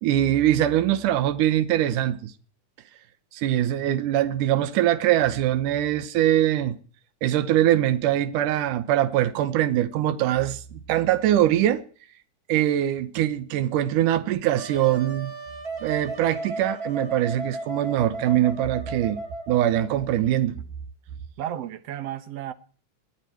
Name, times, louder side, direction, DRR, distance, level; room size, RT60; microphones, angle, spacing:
voice 1, 0.0-2.3 3.3-6.8 7.2-11.8 12.5-15.3 15.8-19.2 19.5-20.6, right 12 dB, 85° right, 2.6 m, -22 dB
Wind instrument woodwind instrument, 14.6-20.1, right 2 dB, 30° right, 2.9 m, -35 dB
voice 2, 21.4-22.5, right 11 dB, 65° right, 1.9 m, -33 dB
22.0 x 13.0 x 4.6 m
omnidirectional pair, 3.6 m